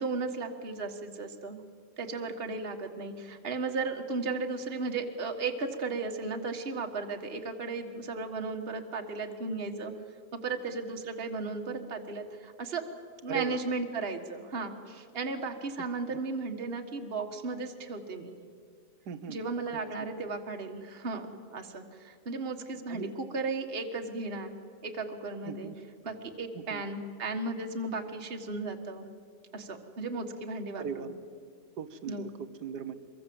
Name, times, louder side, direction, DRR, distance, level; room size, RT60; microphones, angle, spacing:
voice 1, 0.0-1.6 2.0-9.9 10.3-12.8 13.2-18.3 19.3-21.3 21.5-24.5 24.8-25.7 26.0-29.1 29.5-31.1 32.1-32.3, right 3 dB, 35° right, 4 dB, 1.7 m, -35 dB
voice 2, 19.1-19.4 19.7-19.8 22.9-23.1 25.5-25.8 26.6-26.8 30.8-31.1 31.8-32.9, right 8 dB, 80° right, 11 dB, 1.7 m, -38 dB
24.5 x 22.5 x 7.7 m, 2.1 s
omnidirectional pair, 1.8 m